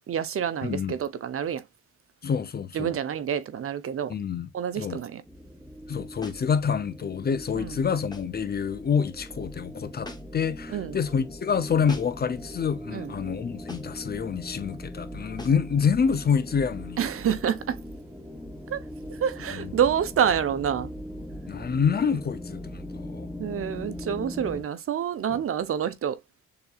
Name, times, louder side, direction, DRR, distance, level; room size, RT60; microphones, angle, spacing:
voice 1, 0.0-1.6 2.7-4.1 4.5-5.2 7.6-7.8 10.7-11.0 12.9-13.1 17.0-17.8 18.7-18.8 19.2-20.9 23.4-26.2, right 8 dB, 50° right, 0.6 m, -27 dB
voice 2, 0.6-0.9 2.2-3.0 4.1-4.5 4.7-5.0 5.9-17.1 19.5-19.7 21.5-23.3 25.3-25.4, left 6 dB, 35° left, 0.5 m, -27 dB
sound 1, 5.3-24.6, left 1 dB, ahead, 0.8 m, -40 dB
sound 2, 6.2-6.5 8.1-8.4 10.0-10.5 11.9-12.3 13.7-14.0 15.4-15.7, left 1 dB, 15° left, 1.1 m, -42 dB
6.8 x 2.7 x 2.3 m
cardioid pair, 90°, 30 cm